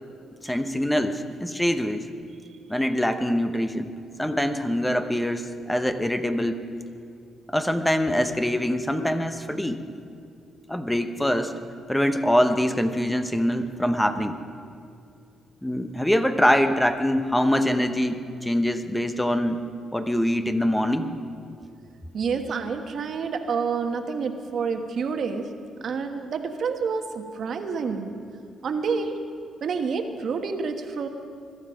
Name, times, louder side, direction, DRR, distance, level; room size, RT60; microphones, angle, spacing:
voice 1, 0.4-2.1 2.7-3.9 4.2-6.6 7.5-9.8 10.7-11.5 11.9-14.4 15.6-19.6 19.9-21.2, equal, 5° left, 8 dB, 1.0 m, -24 dB
voice 2, 22.1-25.5 25.8-28.1 28.6-29.2 29.6-31.1, right 5 dB, 60° right, 6 dB, 1.3 m, -28 dB
21.5 x 13.0 x 5.1 m, 2.4 s
cardioid pair, 100°, 0 cm